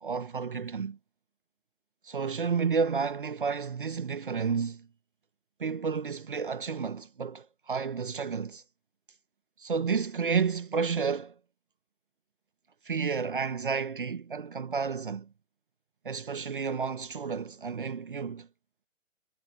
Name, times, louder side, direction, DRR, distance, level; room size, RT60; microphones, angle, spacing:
voice 1, 0.0-1.0 2.0-4.9 5.6-8.6 9.6-11.3 12.8-15.3 16.0-18.5, right 5 dB, 40° right, 1.5 m, -31 dB
figure-of-eight pair, 145°, 42 cm